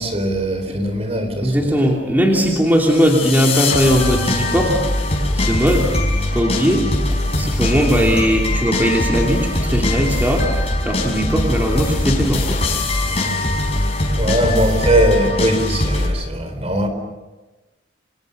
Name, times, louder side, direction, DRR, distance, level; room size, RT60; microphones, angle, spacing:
voice 1, 0.0-1.9 14.2-16.9, right 1 dB, 30° right, 7 dB, 4.1 m, -20 dB
voice 2, 1.4-4.8 5.3-5.9 6.3-6.9 7.4-12.6, equal, 10° right, -1 dB, 2.9 m, -18 dB
sound 1, 2.8-16.1, left 1 dB, 30° left, 5.4 m, -21 dB
29.0 x 25.5 x 6.7 m, 1.1 s
head